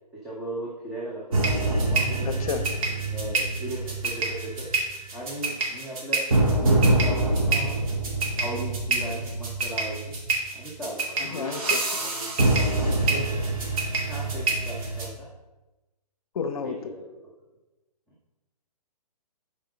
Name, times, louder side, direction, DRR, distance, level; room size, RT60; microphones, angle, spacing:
voice 1, 0.2-1.4 1.8-2.3 3.1-4.7 5.1-6.3 6.6-7.8 8.4-10.1 10.5-11.5 11.9-12.3 12.8-13.3 14.0-15.3 16.6-17.0, right 1 dB, ahead, -8 dB, 0.8 m, -37 dB
sound 1, 1.3-15.1, right 2 dB, 55° right, 2.3 m, -25 dB
voice 2, 2.2-2.6 11.3-11.8 16.3-16.8, left 6 dB, 60° left, 9 dB, 0.8 m, -30 dB
7.6 x 4.7 x 5.0 m, 1.1 s
hypercardioid pair, 155°, 21 cm